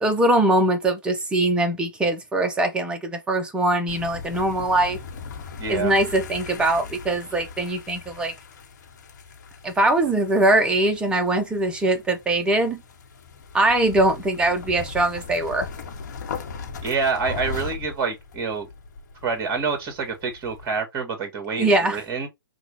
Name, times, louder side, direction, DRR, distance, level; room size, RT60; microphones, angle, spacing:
voice 1, 0.0-5.0 5.7-8.3 9.6-12.8 13.5-15.7 21.6-22.0, right 2 dB, 10° right, 0.8 m, -22 dB
sound 1, 3.9-20.8, left 5 dB, 55° left, 1.2 m, -39 dB
voice 2, 5.6-5.9 16.8-18.7 19.2-22.3, right 5 dB, 25° right, 2.0 m, -27 dB
5.8 x 2.4 x 3.2 m
figure-of-eight pair, 130°, 12 cm